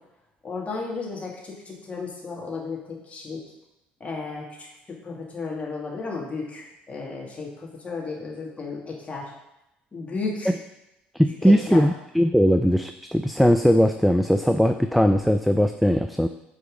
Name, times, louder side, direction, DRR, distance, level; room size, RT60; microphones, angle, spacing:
voice 1, 0.4-2.8 3.0-3.4 4.0-4.5 5.0-9.3 9.9-10.6 11.4-11.9, left 4 dB, 25° left, -3 dB, 2.3 m, -33 dB
voice 2, 11.1-16.3, equal, ahead, 8 dB, 0.4 m, -19 dB
9.3 x 4.1 x 3.9 m, 0.90 s
figure-of-eight pair, 55°, 5 cm